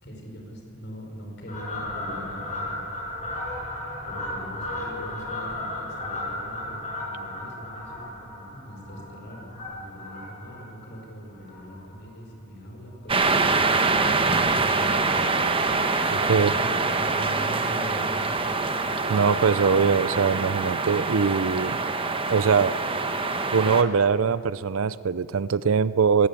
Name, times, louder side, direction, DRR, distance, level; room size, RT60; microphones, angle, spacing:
voice 1, 0.0-2.9 4.1-15.3 16.3-18.6, equal, 50° left, 1 dB, 5.2 m, -41 dB
Fowl, 1.5-12.3 12.7-12.9 13.7-14.2 14.5-14.6 14.9-15.0 15.3-15.4 15.7-15.8 16.8-16.9 17.5-17.6, left 1 dB, 30° left, 7.0 m, -35 dB
sound 1, 13.1-23.8, right 3 dB, 25° right, 1.1 m, -25 dB
voice 2, 16.1-16.5 19.1-21.8 22.3-22.7 23.5-26.3, right 5 dB, 65° right, 18 dB, 0.5 m, -22 dB
21.0 x 17.5 x 8.7 m, 2.7 s
head